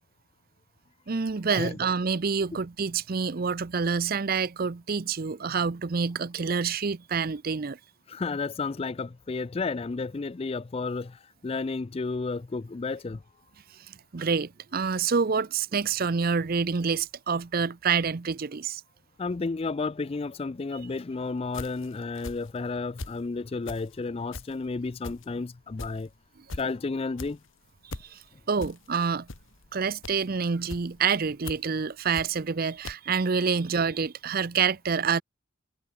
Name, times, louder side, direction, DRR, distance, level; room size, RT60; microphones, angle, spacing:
voice 1, 1.1-7.8 13.9-18.8 28.0-28.2 28.5-29.3 29.7-35.2, right 5 dB, 45° right, 0.6 m, -27 dB
voice 2, 8.1-13.2 19.2-26.1 26.5-27.4, left 3 dB, 30° left, 0.4 m, -32 dB
sound 1, 21.5-23.2 23.6-32.6 32.8-32.9, left 2 dB, 70° left, 1.6 m, -41 dB
head